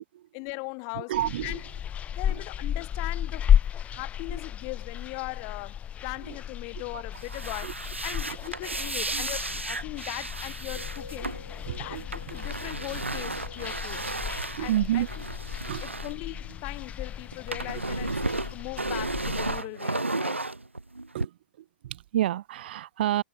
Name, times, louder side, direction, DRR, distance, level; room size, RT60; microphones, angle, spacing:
voice 1, 0.3-1.1 1.4-1.6 2.2-3.5 3.8-7.7 8.0-11.3 11.8-14.0 14.6-15.0 15.8-18.2 18.5-20.5, left 40 dB or more, 40° left, 2.5 m, -39 dB
voice 2, 0.9-1.6 2.3-2.5 4.3-4.4 6.2-6.4 6.9-7.0 7.6-7.7 8.1-8.4 9.1-9.2 11.7-12.4 14.5-15.1 15.7-15.9 17.7-17.8 21.1-23.2, right 13 dB, 55° right, 0.5 m, -30 dB
sound 1, 1.1-19.6, left 9 dB, 20° left, 0.4 m, -33 dB
sound 2, 7.1-16.9 17.2-21.3, right 2 dB, 85° right, 1.3 m, -34 dB
sound 3, 10.5-15.1, left 3 dB, 85° left, 1.9 m, -49 dB
figure-of-eight pair, 100°, 6 cm